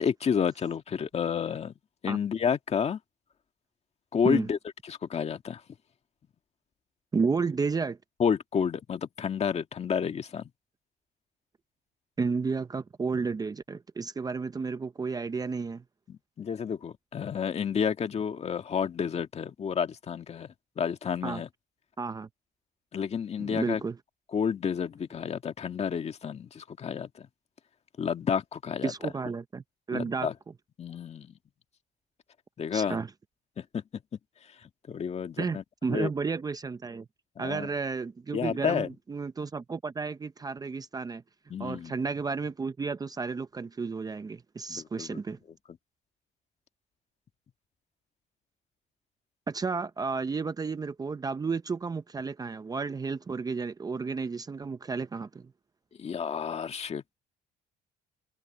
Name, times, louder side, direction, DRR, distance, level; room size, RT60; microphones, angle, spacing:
voice 1, 0.0-1.7 2.0-3.0 4.1-4.6 4.9-5.6 8.2-10.5 16.1-21.5 22.9-23.8 24.3-27.3 28.0-28.9 29.9-30.3 30.8-31.3 32.6-33.0 33.6-33.8 34.9-35.6 35.9-36.1 37.4-37.7 38.3-38.9 41.5-42.0 44.7-45.2 56.0-57.1, left 7 dB, 40° left, 2.0 m, -30 dB
voice 2, 7.1-8.0 12.2-15.8 21.2-21.4 22.0-22.3 23.4-24.0 28.8-30.3 32.7-33.1 35.4-37.1 37.4-41.2 41.6-45.4 49.5-55.5, right 4 dB, 20° right, 0.7 m, -32 dB
cardioid pair, 110°, 17 cm